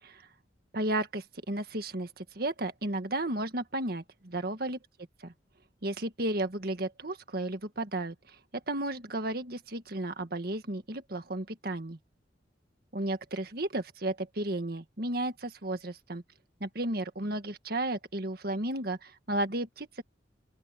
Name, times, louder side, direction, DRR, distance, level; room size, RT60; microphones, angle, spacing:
voice 1, 0.7-4.8 5.8-8.4 8.7-12.0 12.9-16.2 16.6-20.0, right 1 dB, 60° right, 1.8 m, -33 dB
open air
head